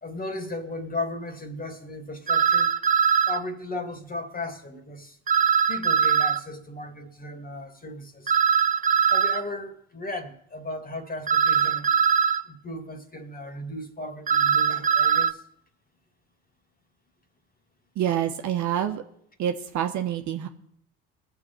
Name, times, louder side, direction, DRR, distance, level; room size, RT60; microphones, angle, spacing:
voice 1, 0.0-2.7 3.3-5.2 5.7-8.4 8.9-11.9 12.5-15.4, left 2 dB, 25° left, 2.5 m, -36 dB
sound 1, 2.3-3.4 5.3-6.4 8.3-9.4 11.3-12.4 14.3-15.3, right 7 dB, 25° right, 0.6 m, -21 dB
voice 2, 17.9-19.0 19.4-20.5, right 10 dB, 60° right, 1.4 m, -27 dB
21.5 x 7.3 x 4.7 m
hypercardioid pair, 60°, 33 cm